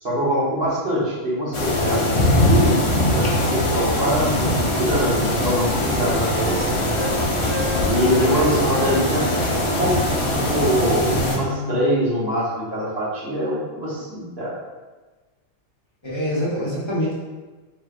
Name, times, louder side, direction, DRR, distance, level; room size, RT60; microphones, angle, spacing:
voice 1, 0.0-2.8 3.1-6.8 7.8-9.3 9.8-14.5 16.6-16.7, equal, 50° right, -8 dB, 1.4 m, -24 dB
sound 1, 1.5-11.4, left 1 dB, 45° left, 0.4 m, -21 dB
sound 2, 2.3-10.1, left 1 dB, 15° right, 1.0 m, -33 dB
Wind instrument woodwind instrument, 4.3-7.2 7.4-10.8, right 1 dB, 70° right, 1.5 m, -34 dB
voice 2, 11.1-11.8 16.0-17.1, equal, 25° left, -8 dB, 0.8 m, -26 dB
4.5 x 3.2 x 2.4 m, 1.2 s
omnidirectional pair, 1.4 m